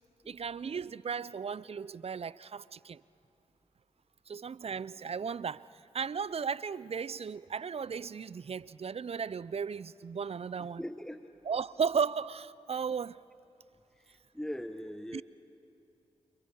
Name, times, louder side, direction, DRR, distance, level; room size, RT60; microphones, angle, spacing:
voice 1, 0.3-3.0 4.3-5.7 5.9-10.8 11.5-13.2 15.1-15.2, right 6 dB, 50° right, 0.5 m, -35 dB
voice 2, 10.6-11.3 14.0-15.2, equal, 5° left, 1.0 m, -41 dB
28.5 x 27.5 x 5.6 m
supercardioid pair, 40°, 13 cm